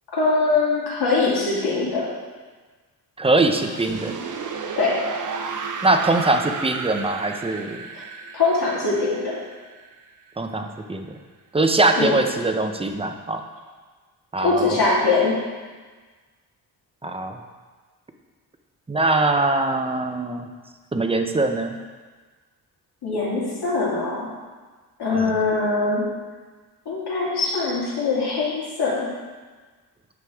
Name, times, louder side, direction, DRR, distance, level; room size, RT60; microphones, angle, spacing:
voice 1, 0.1-2.1 4.8-5.0 7.9-8.0 8.3-9.4 12.0-12.1 14.4-15.4 23.0-24.3 25.0-26.0 26.9-29.1, left 3 dB, 70° left, -6 dB, 2.6 m, -22 dB
voice 2, 3.2-4.1 5.8-7.8 10.4-11.1 11.5-13.4 14.3-14.8 17.0-17.4 18.9-20.5 20.9-21.8 25.1-25.3, right 2 dB, 15° right, 5 dB, 0.6 m, -22 dB
sound 1, 3.5-10.4, right 5 dB, 50° right, 0.7 m, -33 dB
9.3 x 6.4 x 3.5 m, 1.4 s
cardioid pair, 115°, 40 cm